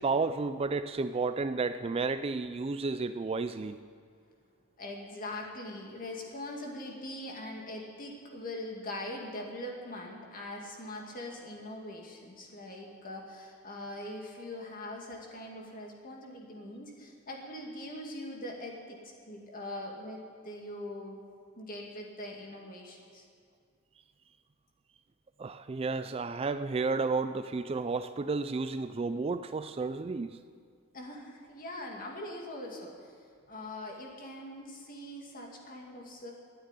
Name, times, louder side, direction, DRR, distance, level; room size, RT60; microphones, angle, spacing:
voice 1, 0.0-3.8 25.4-30.4, right 4 dB, 25° right, 11 dB, 0.3 m, -32 dB
voice 2, 4.8-21.2 21.6-23.2 30.9-33.1 33.5-36.3, left 1 dB, 40° left, 0 dB, 2.2 m, -42 dB
12.5 x 9.3 x 9.9 m, 2.1 s
head